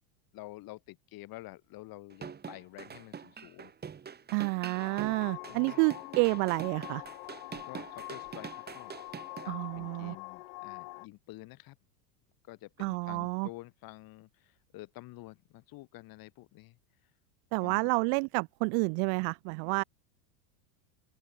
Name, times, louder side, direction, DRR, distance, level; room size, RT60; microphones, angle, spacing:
voice 1, 0.3-3.7 5.5-5.8 7.6-8.9 9.4-11.8 12.5-16.8 17.6-17.9, left 19 dB, 45° left, 3.8 m, -49 dB
sound 1, 2.1-9.5, right 6 dB, 20° right, 5.8 m, -44 dB
voice 2, 4.3-7.0 9.5-10.2 12.8-13.5 17.5-19.8, right 40 dB or more, 45° right, 0.5 m, -29 dB
sound 2, 4.8-11.1, left 27 dB, 65° left, 3.0 m, -45 dB
open air
supercardioid pair, 145°, 49 cm